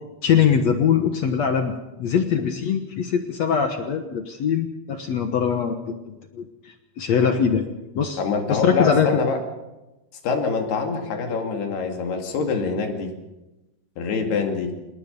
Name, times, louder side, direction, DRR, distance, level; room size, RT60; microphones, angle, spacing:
voice 1, 0.2-1.7 2.0-7.7 8.0-8.2 8.5-9.1, left 7 dB, 65° left, 6 dB, 1.9 m, -22 dB
voice 2, 8.2-9.4 10.2-13.1 14.0-14.7, left 4 dB, 85° left, 4 dB, 4.5 m, -25 dB
27.0 x 19.5 x 5.4 m, 1.0 s
omnidirectional pair, 4.5 m